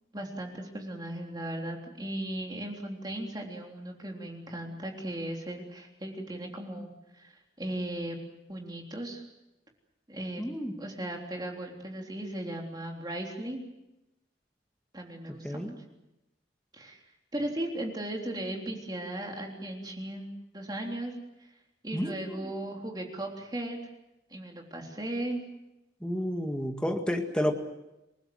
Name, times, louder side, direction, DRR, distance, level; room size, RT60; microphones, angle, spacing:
voice 1, 0.1-8.2 8.5-9.2 10.1-10.4 10.8-13.6 14.9-15.7 16.7-17.0 17.3-20.3 20.5-21.5 21.8-23.8 24.3-25.4, right 1 dB, 20° right, 1 dB, 3.5 m, -37 dB
voice 2, 10.4-10.7 15.3-15.8 21.9-22.5 26.0-27.5, equal, 5° left, 3 dB, 1.9 m, -31 dB
28.5 x 19.5 x 7.7 m, 0.95 s
head